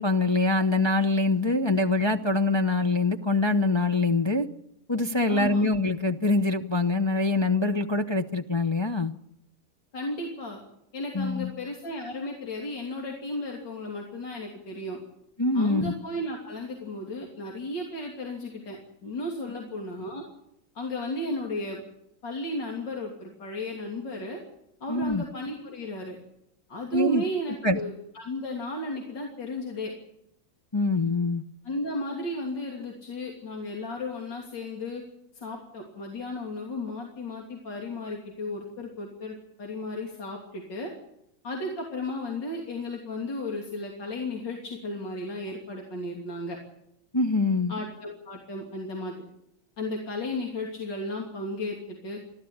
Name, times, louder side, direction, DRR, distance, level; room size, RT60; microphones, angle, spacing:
voice 1, 0.0-4.5 4.9-9.1 11.1-11.5 15.4-15.9 24.9-25.2 26.9-27.2 27.6-27.8 30.7-31.4 47.1-47.7, left 2 dB, 30° left, 4 dB, 0.5 m, -24 dB
voice 2, 5.3-5.7 9.9-10.6 10.9-15.0 15.5-20.2 20.8-21.8 22.2-24.4 24.8-26.2 26.7-29.9 31.6-35.0 35.3-40.9 41.4-46.6 47.7-49.3 49.8-51.8 52.0-52.2, left 1 dB, 70° left, 0 dB, 3.6 m, -34 dB
29.5 x 12.5 x 8.8 m, 0.81 s
omnidirectional pair, 2.0 m